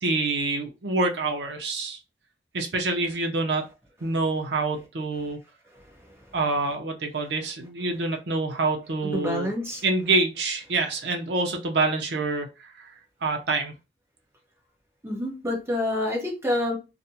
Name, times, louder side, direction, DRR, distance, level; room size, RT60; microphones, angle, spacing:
voice 1, 0.0-2.0 2.5-3.7 4.0-5.4 6.3-9.5 9.8-12.9 13.2-13.7, right 3 dB, 75° right, 0.6 m, -26 dB
voice 2, 5.7-6.3 9.1-9.8 15.0-16.8, left 1 dB, 15° right, 0.8 m, -28 dB
2.4 x 2.1 x 2.7 m
head